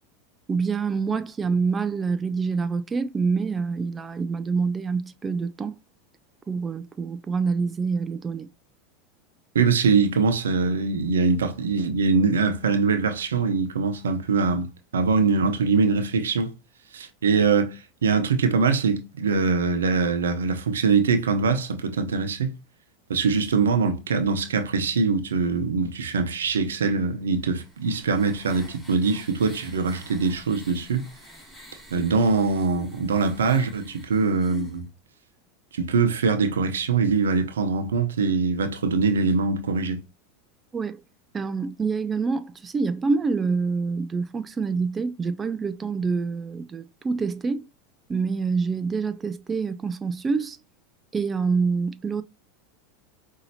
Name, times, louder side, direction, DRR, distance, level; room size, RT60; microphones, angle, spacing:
voice 1, 0.5-5.8 6.5-8.5 40.7-41.0 41.3-47.6 48.1-50.6 51.1-52.2, right 4 dB, 20° right, 0.3 m, -26 dB
voice 2, 9.5-14.7 14.9-16.5 16.9-22.5 23.1-31.0 31.9-34.8 35.7-40.0, right 4 dB, 85° right, 0.8 m, -23 dB
sound 1, 27.3-34.8, equal, ahead, 2.3 m, -48 dB
5.3 x 2.7 x 2.8 m
hypercardioid pair, 100°, 0 cm